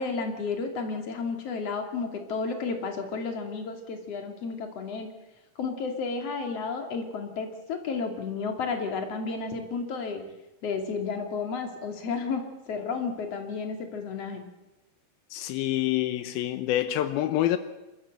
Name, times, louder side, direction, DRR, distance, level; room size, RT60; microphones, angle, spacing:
voice 1, 0.0-5.1 5.6-10.2 10.6-14.4, left 4 dB, 45° left, 3.3 m, -32 dB
voice 2, 15.3-17.6, left 13 dB, 85° left, 2.7 m, -27 dB
28.0 x 14.0 x 7.8 m
omnidirectional pair, 4.2 m